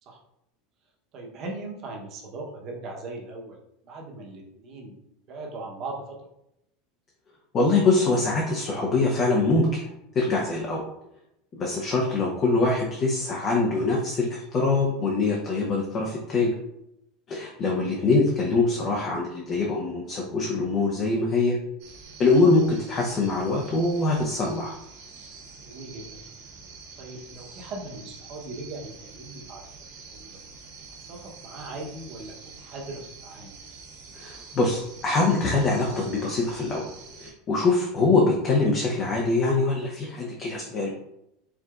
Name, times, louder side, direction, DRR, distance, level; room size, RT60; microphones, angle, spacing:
voice 1, 1.1-3.6 3.8-5.0 5.3-6.2 17.7-17.9 25.6-26.2 27.0-29.6 30.1-30.4 31.0-33.5, right 2 dB, 35° right, -1 dB, 0.9 m, -39 dB
voice 2, 7.5-9.8 10.1-10.8 11.5-16.5 17.3-21.6 22.2-24.8 34.1-36.9 37.2-40.9, left 3 dB, 25° left, -1 dB, 0.6 m, -23 dB
sound 1, 21.8-37.3, right 4 dB, 65° right, 1.5 m, -46 dB
4.7 x 4.0 x 2.4 m, 0.82 s
supercardioid pair, 170°, 0 cm